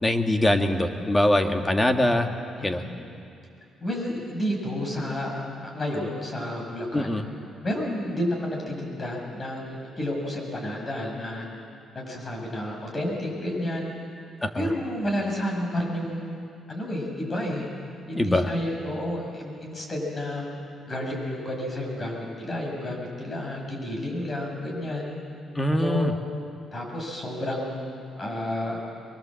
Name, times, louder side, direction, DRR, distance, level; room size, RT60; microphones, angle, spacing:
voice 1, 0.0-2.3 2.6-2.8 6.9-7.2 14.4-14.7 18.1-18.5 25.6-26.1, left 1 dB, 15° left, 5 dB, 1.9 m, -23 dB
voice 2, 2.6-2.9 3.8-7.1 7.6-11.4 11.9-13.9 14.5-16.4 16.7-17.7 18.1-20.5 20.9-25.2 25.6-26.1 26.7-28.8, left 1 dB, 35° left, 0 dB, 6.9 m, -31 dB
23.5 x 23.0 x 7.7 m, 2.4 s
cardioid pair, 90°, 0 cm